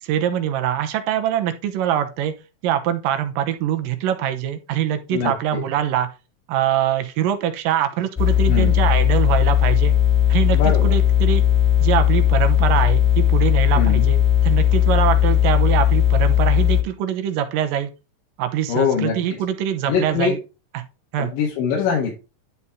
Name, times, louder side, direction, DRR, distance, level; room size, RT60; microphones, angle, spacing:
voice 1, 0.0-2.3 2.6-6.1 6.5-9.9 10.3-11.4 11.8-17.9 18.4-20.4 20.7-20.8 21.1-21.4, right 10 dB, 85° right, 7 dB, 2.6 m, -23 dB
voice 2, 5.1-5.6 8.5-8.7 10.5-11.0 13.7-14.1 18.7-19.4 19.8-20.4 21.2-22.2, left 6 dB, 80° left, -2 dB, 3.2 m, -23 dB
sound 1, 8.2-16.8, left 10 dB, ahead, 1.3 m, -17 dB
11.0 x 4.2 x 3.6 m, 0.29 s
omnidirectional pair, 3.9 m